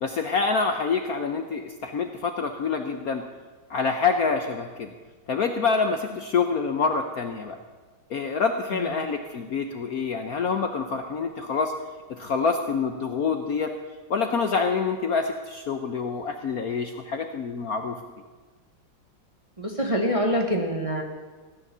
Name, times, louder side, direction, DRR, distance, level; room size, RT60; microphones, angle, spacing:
voice 1, 0.0-3.2 3.7-4.9 5.3-7.6 8.1-11.7 12.1-13.7 14.1-18.0, left 5 dB, 60° left, 6 dB, 1.0 m, -26 dB
voice 2, 19.6-21.0, equal, 20° right, 2 dB, 1.0 m, -25 dB
16.0 x 9.9 x 6.8 m, 1.3 s
omnidirectional pair, 2.3 m